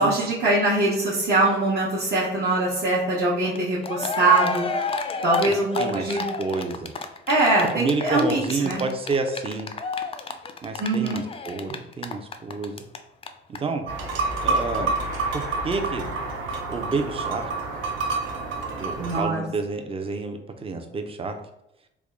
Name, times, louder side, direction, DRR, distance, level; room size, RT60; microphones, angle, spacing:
voice 1, 0.0-4.7 5.2-6.2 7.3-8.8 10.8-11.2 19.0-19.4, right 2 dB, 55° right, -7 dB, 1.0 m, -22 dB
Cheering, 3.6-3.7 3.8-13.0 13.2-13.3 13.5-13.6, left 4 dB, 30° left, 0.4 m, -30 dB
voice 2, 5.5-6.9 7.7-9.7 10.6-12.8 13.5-13.8 14.4-14.9 15.3-16.1 16.7-17.5 18.8-21.4, right 4 dB, 30° right, 6 dB, 0.5 m, -29 dB
sound 1, 13.9-19.2, right 3 dB, 80° right, 0.7 m, -28 dB
3.4 x 2.1 x 3.6 m, 0.86 s
cardioid pair, 90°, 20 cm